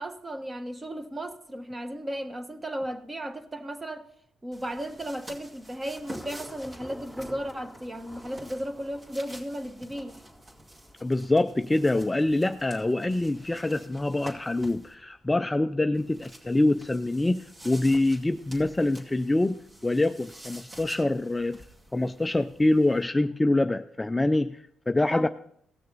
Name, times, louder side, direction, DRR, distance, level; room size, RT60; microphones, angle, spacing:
voice 1, 0.0-4.1 4.4-10.2 25.1-25.3, equal, 20° right, 1.2 m, -35 dB
sound 1, 4.5-14.9 15.9-23.0, right 1 dB, 40° right, 2.3 m, -49 dB
Thunder / Rain, 4.9-18.4, equal, ahead, 2.6 m, -52 dB
voice 2, 11.0-21.6 21.9-25.3, left 2 dB, 15° left, 0.4 m, -25 dB
17.5 x 6.6 x 3.9 m
cardioid pair, 90°, 0 cm